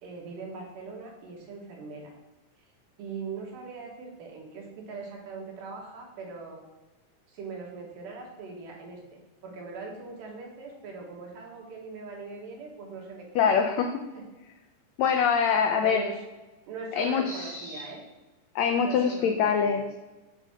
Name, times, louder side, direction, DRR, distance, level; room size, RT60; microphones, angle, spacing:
voice 1, 0.0-2.1 3.0-6.6 7.3-13.5 14.1-14.2 15.7-16.2 16.7-18.0 18.8-19.8, right 4 dB, 80° right, -1 dB, 3.0 m, -41 dB
voice 2, 13.3-14.0 15.0-16.1 16.9-17.9 18.5-19.8, left 6 dB, 90° left, 5 dB, 1.5 m, -24 dB
7.9 x 2.8 x 5.8 m, 1.1 s
omnidirectional pair, 3.7 m